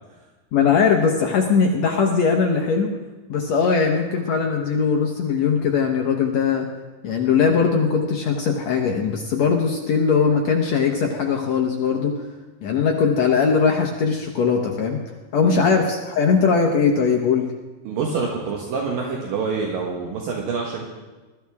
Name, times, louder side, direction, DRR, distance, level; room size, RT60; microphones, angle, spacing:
voice 1, 0.5-2.9 3.3-6.7 7.0-12.2 12.6-15.0 15.3-17.5, left 5 dB, 65° left, 2 dB, 1.8 m, -20 dB
voice 2, 17.8-20.8, right 5 dB, 70° right, -1 dB, 3.0 m, -26 dB
20.5 x 13.5 x 3.5 m, 1.2 s
omnidirectional pair, 4.2 m